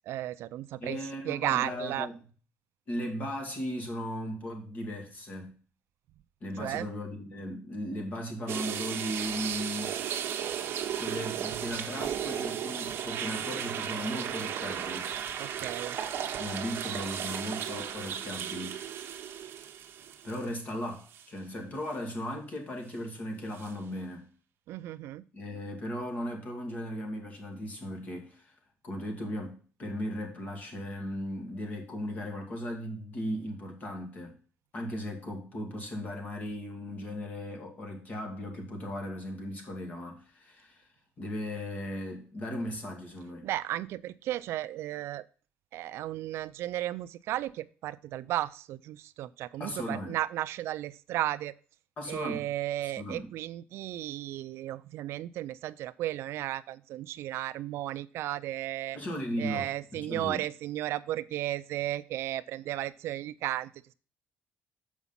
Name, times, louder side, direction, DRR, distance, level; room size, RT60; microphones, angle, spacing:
voice 1, 0.1-2.1 6.6-6.9 15.4-16.0 24.7-25.2 43.4-45.3 45.7-51.5 52.1-59.0 59.4-63.7, right 14 dB, 80° right, 0.4 m, -34 dB
voice 2, 0.8-2.1 2.9-5.5 6.4-10.0 11.0-15.1 16.4-18.8 20.2-24.3 25.3-28.5 28.8-34.3 34.7-40.9 41.2-43.5 49.6-50.2 52.0-52.5 53.0-53.3 58.9-60.4, equal, 40° left, 2.2 m, -37 dB
sound 1, 8.5-20.7 21.1-21.2 23.6-23.7, right 9 dB, 65° right, 1.0 m, -35 dB
7.2 x 5.0 x 5.5 m
cardioid pair, 150°, 4 cm